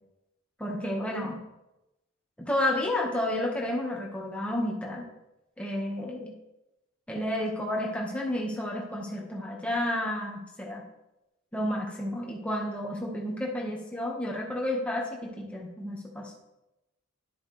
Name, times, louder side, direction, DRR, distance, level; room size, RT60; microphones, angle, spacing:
voice 1, 0.6-1.4 2.4-5.1 5.6-6.3 7.1-10.8 11.5-16.4, left 1 dB, 5° left, -2 dB, 1.6 m, -31 dB
11.5 x 6.9 x 3.4 m, 0.94 s
head